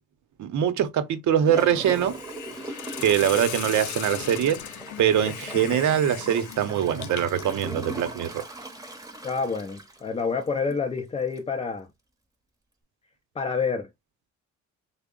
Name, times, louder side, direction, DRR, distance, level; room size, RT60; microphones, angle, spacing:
voice 1, 0.4-2.2 2.7-4.6 5.0-8.4, right 9 dB, 70° right, 0.7 m, -23 dB
Gurgling / Toilet flush, 1.5-10.9 11.4-11.5, right 2 dB, 10° right, 0.8 m, -40 dB
Hiss, 1.8-7.6, left 11 dB, 75° left, 0.5 m, -38 dB
voice 2, 9.2-11.9 13.4-13.9, left 5 dB, 20° left, 0.4 m, -28 dB
3.3 x 2.0 x 3.7 m
cardioid pair, 90°, 30 cm